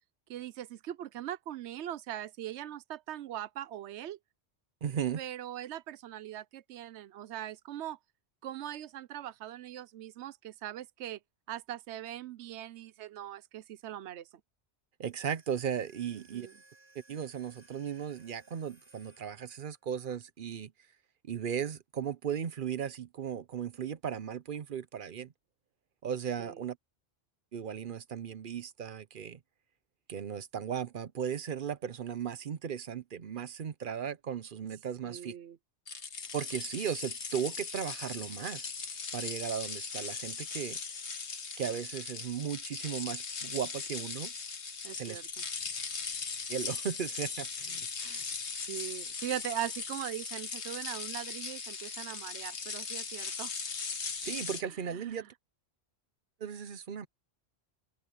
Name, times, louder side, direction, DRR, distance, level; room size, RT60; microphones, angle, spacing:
voice 1, 0.3-4.2 5.2-8.0 8.4-11.2 11.5-14.3 16.1-16.5 26.4-26.6 35.0-35.6 44.8-45.4 48.0-48.3 48.6-53.5 54.6-55.3, right 12 dB, 80° right, 1.0 m, -41 dB
voice 2, 4.8-5.2 15.0-16.5 17.1-20.7 21.3-25.3 26.0-26.8 27.5-29.4 30.1-35.3 36.3-38.7 39.1-40.8 41.6-44.3 44.9-45.2 46.5-47.9 54.2-55.2 56.4-57.1, right 8 dB, 55° right, 0.8 m, -36 dB
sound 1, 15.1-19.8, right 2 dB, 10° left, 4.2 m, -62 dB
sound 2, 35.9-54.6, left 5 dB, 85° left, 1.8 m, -39 dB
omnidirectional pair, 1.1 m